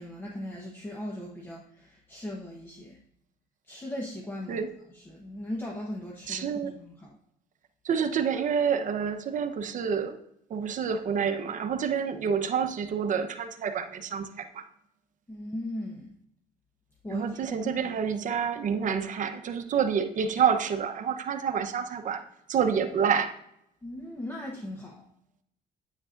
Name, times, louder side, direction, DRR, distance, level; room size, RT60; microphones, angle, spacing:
voice 1, 0.0-3.0 3.7-7.2 15.3-16.2 17.0-17.9 23.8-25.0, left 1 dB, 15° left, -1 dB, 1.1 m, -38 dB
voice 2, 6.3-6.7 7.8-10.2 10.5-14.6 17.1-22.2 22.5-23.3, right 7 dB, 50° right, 8 dB, 0.9 m, -28 dB
9.6 x 8.2 x 2.6 m, 0.75 s
cardioid pair, 110°, 17 cm